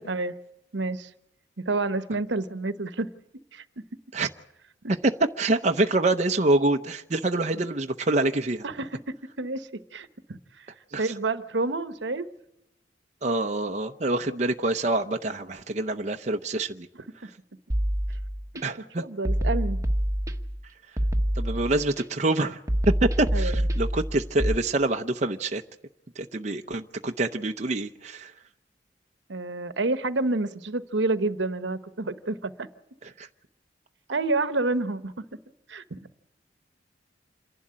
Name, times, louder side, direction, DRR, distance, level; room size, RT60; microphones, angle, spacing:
voice 1, 0.7-1.1 1.6-3.1 3.5-3.6 4.8-5.0 8.6-9.0 9.4-10.7 11.0-12.2 16.9-17.0 18.5-18.6 19.0-19.8 23.3-23.6 29.3-32.7 34.1-35.2 35.7-36.0, right 2 dB, 75° right, 12 dB, 1.1 m, -29 dB
voice 2, 5.4-8.6 10.9-11.1 13.2-16.9 18.6-19.0 21.4-22.6 22.9-25.6 26.2-28.3 33.0-33.3, right 2 dB, 40° right, 5 dB, 0.7 m, -26 dB
sound 1, 17.7-18.6 19.2-20.6 21.0-22.0 22.7-24.6, equal, 15° right, 1.2 m, -26 dB
27.5 x 11.5 x 9.8 m, 0.86 s
head